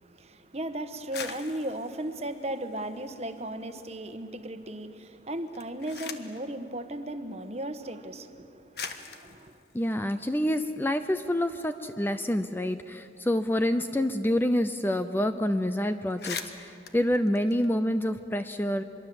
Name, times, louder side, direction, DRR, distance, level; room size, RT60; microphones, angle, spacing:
voice 1, 0.0-9.6, right 1 dB, 35° right, 1.3 m, -36 dB
sound 1, 0.9-3.5 3.9-4.6 5.4-6.5 7.5-7.6 8.3-8.4 8.7-11.1 11.4-11.5 11.8-14.4 14.6-14.8 15.1-15.3 15.7-15.8 16.0-18.2, left 6 dB, 60° left, 1.4 m, -43 dB
voice 2, 9.7-18.8, left 1 dB, 10° left, 0.5 m, -27 dB
25.5 x 22.5 x 7.8 m
head